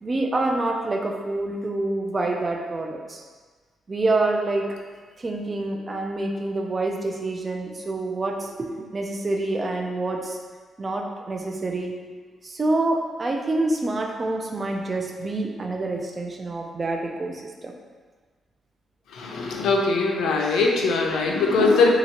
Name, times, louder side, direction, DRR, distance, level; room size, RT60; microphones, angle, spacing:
voice 1, 0.0-3.2 3.9-4.7 5.2-10.4 10.8-11.9 12.4-17.7 19.4-19.6, right 2 dB, 30° right, 2 dB, 0.5 m, -27 dB
voice 2, 19.1-21.9, left 3 dB, 90° left, 1 dB, 0.6 m, -21 dB
3.6 x 2.9 x 4.3 m, 1.4 s
cardioid pair, 100°, 0 cm